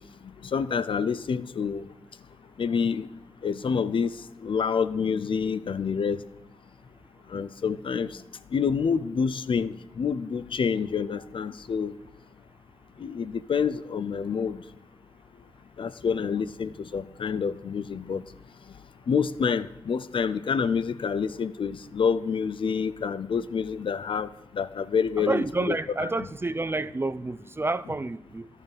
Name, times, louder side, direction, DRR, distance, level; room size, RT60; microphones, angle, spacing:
voice 1, 0.5-1.8 2.6-3.1 3.4-4.1 4.4-6.2 7.3-8.1 8.5-11.9 13.0-14.6 15.8-18.2 19.1-24.3 24.5-25.8 26.0-26.3, left 6 dB, 60° left, 0.4 m, -27 dB
voice 2, 25.2-28.5, right 2 dB, 25° right, 0.4 m, -29 dB
11.5 x 5.6 x 5.4 m
cardioid pair, 45°, 10 cm